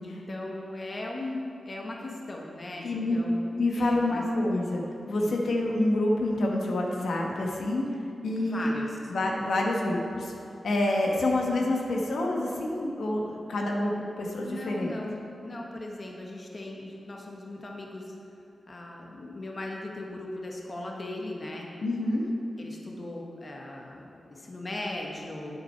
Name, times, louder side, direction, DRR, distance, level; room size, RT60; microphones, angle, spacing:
voice 1, 0.0-4.4 5.1-5.4 8.4-9.0 14.4-18.1 18.7-21.7 22.6-25.6, left 2 dB, 35° left, -1 dB, 1.1 m, -38 dB
voice 2, 2.8-3.2 3.6-7.8 8.2-8.7 9.1-10.3 10.6-13.9 14.2-14.9 21.8-22.3, left 1 dB, 80° left, -1 dB, 1.2 m, -27 dB
9.5 x 7.9 x 4.5 m, 2.6 s
wide cardioid pair, 120°, 0 cm